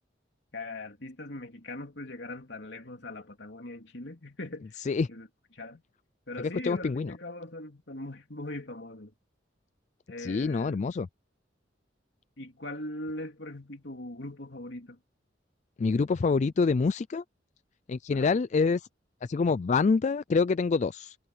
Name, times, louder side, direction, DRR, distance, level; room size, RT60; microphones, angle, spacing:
voice 1, 0.5-4.8 5.1-5.3 5.5-5.8 6.3-9.1 10.1-10.8 12.4-15.0 18.1-18.4, left 2 dB, 65° left, 3.5 m, -40 dB
voice 2, 6.6-7.1 10.2-11.1 15.8-17.2 17.9-18.8 19.2-21.2, left 4 dB, 40° left, 0.3 m, -26 dB
head